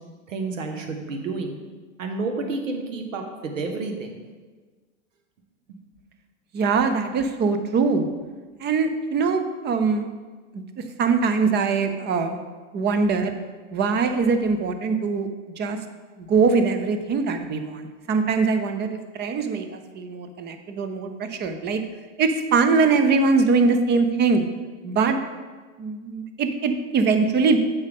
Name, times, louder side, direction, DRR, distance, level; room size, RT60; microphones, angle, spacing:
voice 1, 0.3-1.6 2.0-4.1 12.8-12.9, right 3 dB, 85° right, 4 dB, 1.3 m, -30 dB
voice 2, 6.5-8.1 8.6-10.1 10.5-10.6 11.0-12.4 12.7-13.3 13.7-15.3 15.6-15.8 16.2-21.8 22.2-24.4 24.8-25.2 25.8-27.6, right 4 dB, 25° right, 8 dB, 0.7 m, -22 dB
8.0 x 5.6 x 3.6 m, 1.4 s
hypercardioid pair, 110°, 38 cm